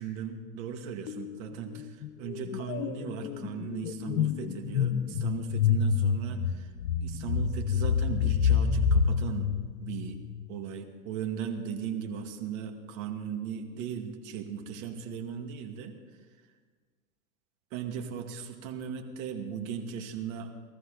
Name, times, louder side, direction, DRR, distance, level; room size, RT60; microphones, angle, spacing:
voice 1, 0.0-6.7 7.0-9.5 9.8-10.2 10.5-15.9 17.7-20.5, right 7 dB, 55° right, 4 dB, 2.0 m, -37 dB
sound 1, 1.1-1.4 1.7-10.4, left 6 dB, 75° left, 1.0 m, -28 dB
20.0 x 13.5 x 3.8 m, 1.5 s
hypercardioid pair, 105°, 47 cm